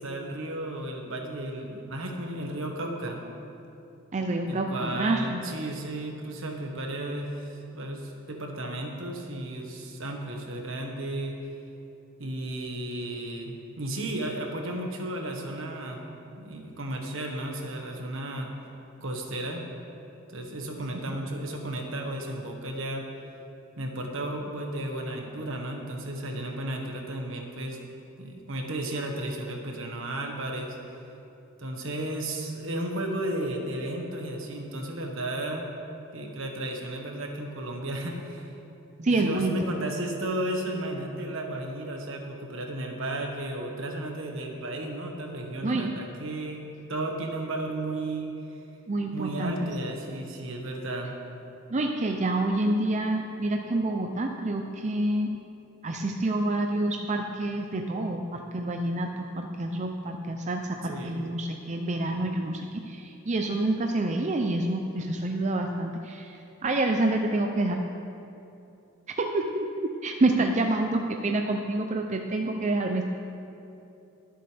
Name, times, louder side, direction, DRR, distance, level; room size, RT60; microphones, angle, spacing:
voice 1, 0.0-3.2 4.5-11.4 12.2-16.0 16.3-18.5 19.0-19.6 20.3-23.1 23.8-27.8 28.2-30.8 31.6-35.7 36.1-38.5 39.0-46.6 46.9-48.3 49.1-51.1 60.8-61.2, right 1 dB, 65° right, 2 dB, 1.5 m, -34 dB
voice 2, 4.1-5.4 21.1-21.2 39.0-39.6 45.6-46.0 48.9-49.7 51.7-55.4 55.8-67.8 69.2-73.0, right 2 dB, 35° right, 3 dB, 0.5 m, -28 dB
22.0 x 7.8 x 3.4 m, 2.8 s
head